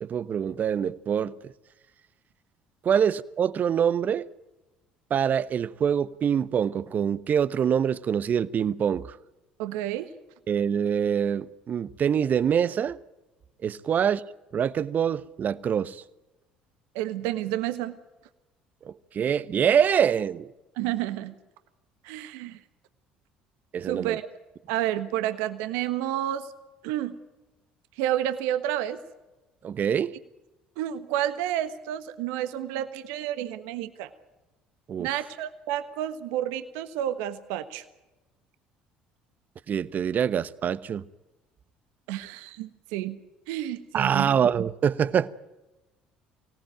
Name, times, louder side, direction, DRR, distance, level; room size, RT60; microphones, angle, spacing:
voice 1, 0.0-1.3 2.8-4.3 5.1-9.2 10.5-13.0 13.6-14.2 14.5-16.0 18.8-20.5 23.7-24.2 29.6-30.1 34.9-35.1 39.7-41.0 43.9-45.3, right 8 dB, 45° right, 1.0 m, -25 dB
voice 2, 9.6-10.1 16.9-17.9 20.8-21.3 22.0-22.6 23.9-24.2 24.7-26.5 26.8-27.1 28.0-29.0 30.8-34.1 35.0-37.8 42.1-43.2 43.5-44.4, right 12 dB, 75° right, 1.4 m, -30 dB
24.0 x 18.0 x 9.1 m
hypercardioid pair, 65°, 4 cm